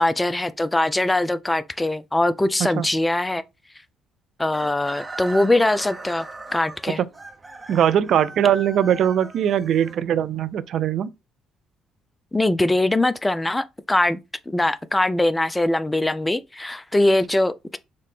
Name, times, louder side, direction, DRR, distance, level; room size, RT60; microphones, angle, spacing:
voice 1, 0.0-3.4 4.4-6.3 6.5-7.0 12.3-14.2 14.5-17.8, left 1 dB, 15° left, 0.4 m, -22 dB
Chicken rooster, 4.5-10.5, right 2 dB, 25° right, 0.7 m, -39 dB
voice 2, 7.7-11.1, right 9 dB, 65° right, 0.3 m, -21 dB
4.0 x 2.1 x 3.2 m
hypercardioid pair, 55°, 0 cm